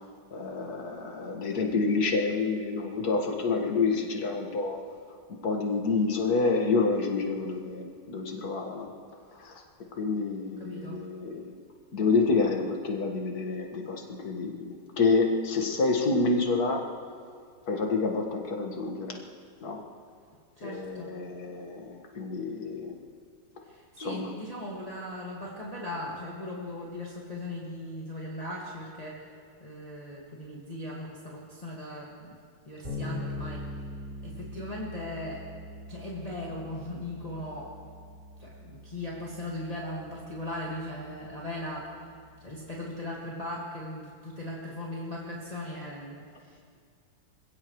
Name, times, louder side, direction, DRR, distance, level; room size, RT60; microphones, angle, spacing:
voice 1, 0.3-4.8 5.3-8.9 9.3-9.6 10.0-11.6 11.9-16.8 17.7-19.2 19.6-19.8 20.6-23.0 24.0-24.3, left 4 dB, 55° left, 1 dB, 2.2 m, -28 dB
voice 2, 10.6-11.0 20.6-21.1 23.6-29.3 29.6-32.4 32.7-33.7 34.2-35.4 35.9-37.7 38.4-41.9 42.4-46.6, left 1 dB, 20° left, -6 dB, 1.9 m, -38 dB
Bass guitar, 32.8-42.5, left 1 dB, 25° right, 3.8 m, -43 dB
26.0 x 16.5 x 3.2 m, 2.2 s
omnidirectional pair, 2.0 m